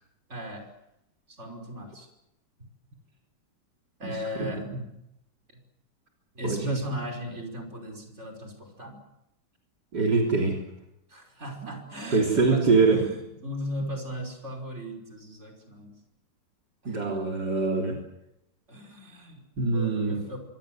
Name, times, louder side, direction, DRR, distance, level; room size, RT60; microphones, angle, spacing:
voice 1, 0.3-0.7 1.3-2.1 2.6-2.7 4.0-4.7 6.3-9.0 11.1-16.0 16.8-17.0 18.7-19.4 19.7-20.4, equal, 40° right, 3 dB, 5.8 m, -37 dB
voice 2, 4.4-4.8 6.4-6.8 9.9-10.6 12.1-13.0 16.9-18.0 19.6-20.2, right 4 dB, 65° right, 0 dB, 4.1 m, -24 dB
25.5 x 24.0 x 7.8 m, 0.84 s
omnidirectional pair, 1.9 m